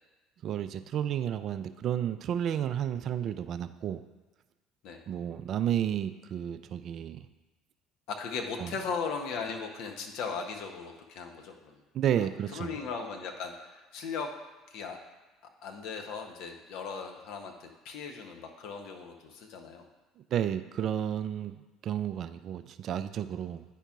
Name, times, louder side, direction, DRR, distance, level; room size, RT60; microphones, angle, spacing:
voice 1, 0.4-4.0 5.1-7.3 8.6-8.7 11.9-12.7 20.3-21.5 21.8-23.6, right 10 dB, 50° right, 11 dB, 0.3 m, -31 dB
voice 2, 8.1-11.8 12.5-14.3 14.7-15.0 15.6-19.8, left 5 dB, 60° left, 3 dB, 0.8 m, -38 dB
9.9 x 4.5 x 2.4 m, 1.2 s
figure-of-eight pair, 60°, 0 cm